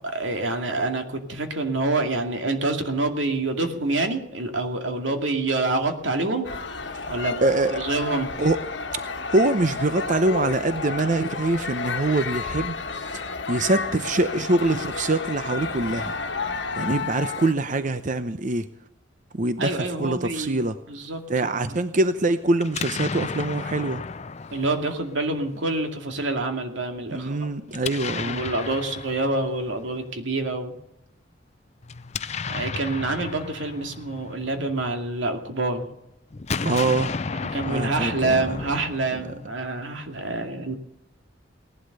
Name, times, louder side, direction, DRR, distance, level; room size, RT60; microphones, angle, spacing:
voice 1, 0.1-6.5 7.1-7.4 7.7-8.4 19.6-20.6 20.9-21.3 24.5-27.5 28.2-30.7 32.5-35.9 37.4-40.7, right 2 dB, 90° right, 5 dB, 2.4 m, -27 dB
sound 1, 6.4-17.5, left 4 dB, 65° left, 1.4 m, -31 dB
voice 2, 7.4-7.8 8.4-8.6 8.9-16.1 16.8-18.7 19.3-20.8 21.3-24.0 27.1-28.5 36.6-37.2 37.7-38.6, right 2 dB, 45° right, 10 dB, 0.7 m, -24 dB
Explosion, 22.6-25.6 27.7-29.9 31.8-35.3 36.3-39.7, left 4 dB, 35° left, 0.6 m, -33 dB
18.0 x 11.5 x 6.7 m, 0.81 s
head